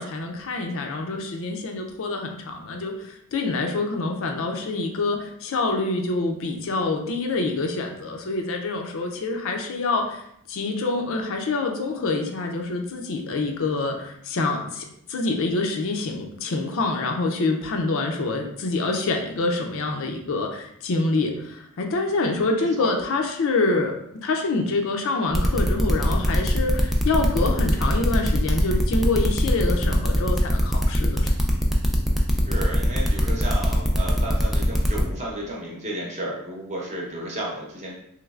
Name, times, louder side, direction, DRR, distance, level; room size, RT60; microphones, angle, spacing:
voice 1, 0.0-10.2 10.5-24.0 24.2-31.5, left 3 dB, 65° left, 3 dB, 0.5 m, -26 dB
voice 2, 22.5-22.9 32.4-38.0, right 1 dB, 30° right, -3 dB, 0.8 m, -33 dB
sound 1, 25.3-35.0, equal, ahead, 0.3 m, -24 dB
3.2 x 3.1 x 2.4 m, 0.73 s
head